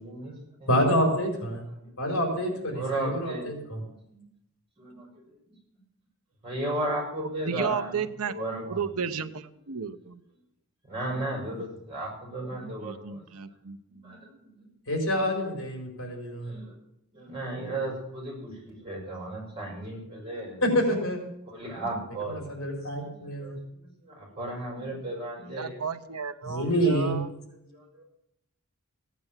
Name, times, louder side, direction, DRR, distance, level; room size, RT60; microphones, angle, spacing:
voice 1, 0.0-0.3 0.6-0.7 1.8-1.9 2.7-3.5 4.1-4.2 4.8-5.1 6.4-7.9 8.3-8.8 10.9-13.2 14.0-14.3 14.5-14.6 16.5-16.7 17.1-20.6 21.5-22.4 23.2-23.5 24.1-25.8 27.7-28.0, right 1 dB, 25° right, -2 dB, 6.7 m, -34 dB
voice 2, 0.7-1.6 2.0-3.8 14.9-16.5 20.6-21.2 22.3-23.6 26.5-27.1, equal, 60° left, 2 dB, 4.5 m, -27 dB
voice 3, 7.4-10.2 12.8-14.2 25.4-27.3, right 6 dB, 85° right, 10 dB, 1.0 m, -34 dB
16.5 x 9.5 x 7.5 m, 0.81 s
head